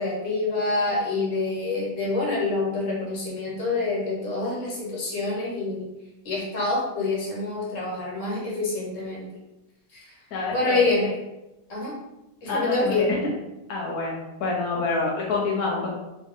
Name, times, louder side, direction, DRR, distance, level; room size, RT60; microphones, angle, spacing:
voice 1, 0.0-5.9 6.2-9.3 10.0-10.1 10.5-11.1 11.7-11.9 12.4-13.1, left 3 dB, 60° left, -4 dB, 1.4 m, -26 dB
voice 2, 10.3-10.9 12.5-13.3 13.7-14.1 14.4-15.9, left 3 dB, 85° left, -3 dB, 1.2 m, -27 dB
2.9 x 2.5 x 3.6 m, 0.99 s
omnidirectional pair, 1.5 m